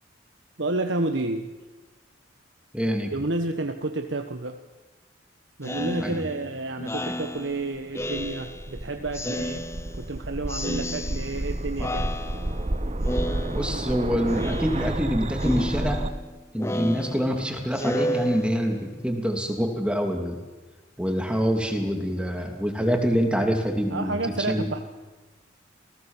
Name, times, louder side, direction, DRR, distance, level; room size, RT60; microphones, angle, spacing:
voice 1, 0.6-1.5 3.1-4.6 5.6-9.7 9.9-12.1 23.9-24.8, right 2 dB, 70° right, 6 dB, 1.4 m, -30 dB
voice 2, 2.7-3.1 6.0-6.2 13.5-16.0 16.5-20.4 21.0-24.2 24.5-24.7, equal, 5° right, 3 dB, 2.8 m, -26 dB
Speech synthesizer, 5.6-8.8 9.1-10.2 10.5-11.5 11.8-12.7 13.0-13.9 14.3-15.1 15.4-18.9, equal, 15° left, 0.8 m, -32 dB
sound 1, 7.7-16.1, right 1 dB, 35° right, 1.0 m, -30 dB
28.5 x 19.0 x 7.4 m, 1.2 s
head